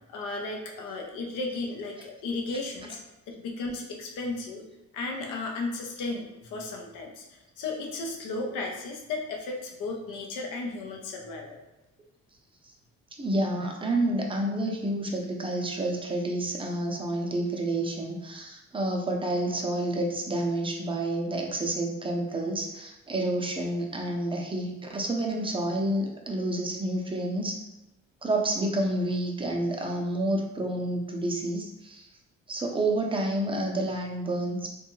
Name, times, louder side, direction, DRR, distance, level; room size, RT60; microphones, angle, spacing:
voice 1, 0.1-3.0 3.3-4.6 4.9-11.6, left 3 dB, 90° left, 1 dB, 0.6 m, -34 dB
voice 2, 13.2-27.6 28.2-32.1 32.5-34.7, right 1 dB, 15° right, 0 dB, 0.5 m, -29 dB
2.6 x 2.3 x 3.0 m, 0.95 s
cardioid pair, 90°, 30 cm